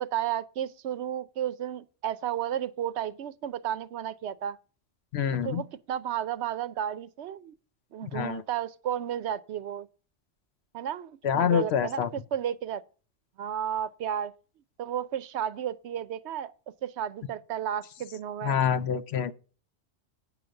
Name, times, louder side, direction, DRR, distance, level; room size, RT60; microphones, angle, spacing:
voice 1, 0.0-4.6 5.4-7.5 7.9-9.9 10.7-12.8 13.4-14.3 14.8-16.5 16.8-18.6, right 10 dB, 75° right, 0.9 m, -33 dB
voice 2, 5.1-5.6 8.1-8.4 11.2-12.1 18.4-19.3, left 8 dB, 70° left, 0.9 m, -26 dB
9.0 x 5.7 x 6.4 m
omnidirectional pair, 1.2 m